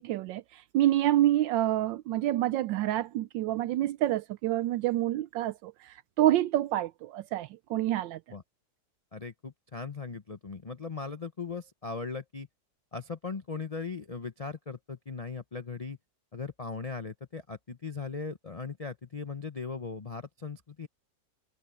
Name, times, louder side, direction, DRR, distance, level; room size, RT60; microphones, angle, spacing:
voice 1, 0.0-8.2, right 13 dB, 80° right, 1.2 m, -28 dB
voice 2, 9.1-12.5 12.9-16.0 16.3-20.9, left 4 dB, 80° left, 0.3 m, -38 dB
omnidirectional pair, 2.1 m